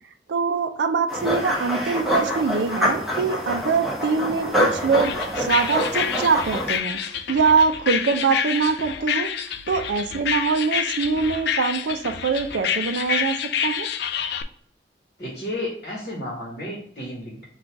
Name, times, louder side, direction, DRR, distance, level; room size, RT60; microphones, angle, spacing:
voice 1, 0.3-9.3 9.7-13.9, right 5 dB, 75° right, 7 dB, 0.4 m, -23 dB
sound 1, 1.1-6.8, equal, ahead, 0.9 m, -26 dB
sound 2, 4.9-14.4, left 8 dB, 65° left, 0.3 m, -28 dB
voice 2, 15.2-17.4, left 1 dB, 40° left, -3 dB, 1.2 m, -32 dB
3.9 x 2.3 x 4.5 m, 0.64 s
head